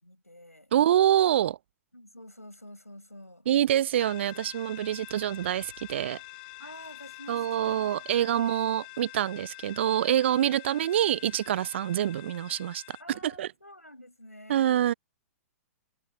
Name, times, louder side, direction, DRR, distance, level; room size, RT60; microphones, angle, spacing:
voice 1, 0.0-0.7 1.9-3.5 6.6-8.6 13.0-14.9, left 1 dB, 85° left, 6.0 m, -49 dB
voice 2, 0.7-1.6 3.5-6.2 7.3-13.5 14.5-14.9, right 11 dB, 50° right, 0.8 m, -26 dB
sound 1, 4.0-13.0, left 27 dB, 35° left, 6.6 m, -46 dB
figure-of-eight pair, 110°, 8 cm